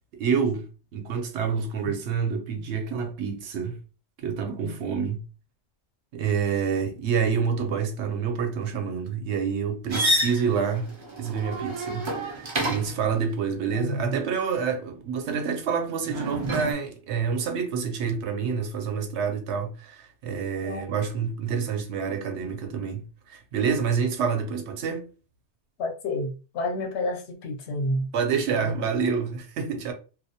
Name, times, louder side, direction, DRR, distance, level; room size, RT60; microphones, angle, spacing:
voice 1, 0.1-0.7 0.9-3.8 4.2-5.2 6.1-10.9 11.2-25.1 28.1-29.9, right 6 dB, 75° right, 0.9 m, -28 dB
sound 1, 9.9-13.1 16.1-16.7, right 1 dB, 45° right, 0.4 m, -28 dB
voice 2, 13.7-14.2 20.6-20.9 25.8-28.1 28.6-28.7, left 1 dB, 75° left, 0.8 m, -30 dB
2.3 x 2.0 x 2.7 m
omnidirectional pair, 1.2 m